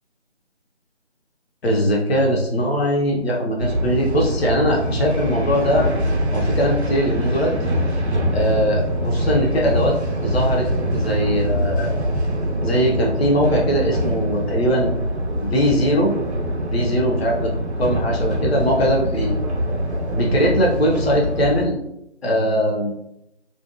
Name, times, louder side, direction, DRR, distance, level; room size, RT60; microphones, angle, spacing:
voice 1, 1.6-5.9 6.3-7.5 8.3-10.0 10.2-12.0 12.6-14.9 15.4-16.1 16.7-17.5 17.8-19.4 20.1-21.8 22.2-22.9, equal, 60° left, -1 dB, 0.6 m, -20 dB
sound 1, 3.6-21.7, equal, 65° right, 0.5 m, -24 dB
2.5 x 2.2 x 2.4 m, 0.81 s
figure-of-eight pair, 160°, 36 cm